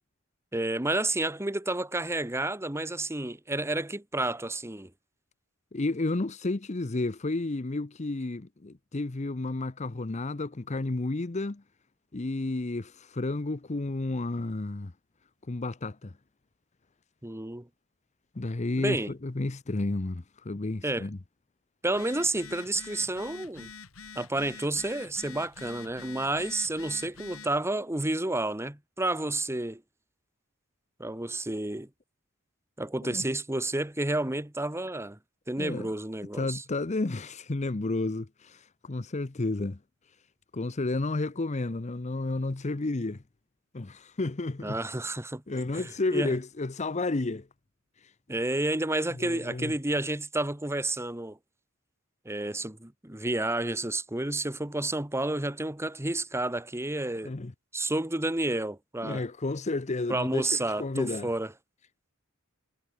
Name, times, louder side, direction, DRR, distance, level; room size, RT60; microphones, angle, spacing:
voice 1, 0.5-4.9 17.2-17.7 18.8-19.1 20.8-21.1 21.8-23.7 24.1-29.8 31.0-31.9 32.8-35.2 35.5-36.6 44.6-45.4 45.7-46.4 48.3-51.4 52.2-57.4 57.7-59.2 60.1-61.5, right 2 dB, 15° right, 1.3 m, -30 dB
voice 2, 5.7-11.6 12.1-14.9 15.5-16.1 18.3-21.2 33.0-33.2 35.6-35.9 36.3-39.8 40.5-43.2 43.7-44.8 45.5-47.5 49.1-49.7 57.2-57.5 59.0-61.3, left 2 dB, 35° left, 0.7 m, -31 dB
Telephone, 21.9-27.6, left 6 dB, 85° left, 2.7 m, -46 dB
head